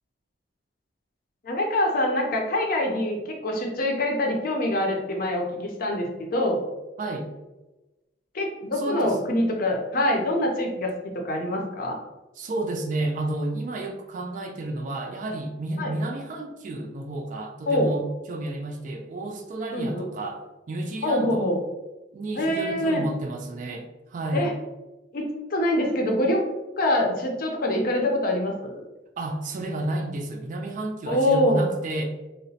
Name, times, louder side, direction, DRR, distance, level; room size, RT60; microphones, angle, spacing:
voice 1, 1.4-6.6 8.3-12.0 15.8-15.9 17.7-17.9 19.7-20.1 21.0-21.6 22.4-23.0 24.3-24.5 25.1-26.4 26.8-28.7 31.1-31.7, left 1 dB, 50° left, 1 dB, 0.5 m, -25 dB
voice 2, 7.0-7.3 8.8-9.2 12.4-21.5 22.1-24.5 29.2-32.1, right 2 dB, 45° right, 3 dB, 0.4 m, -31 dB
2.9 x 2.0 x 2.7 m, 1.1 s
head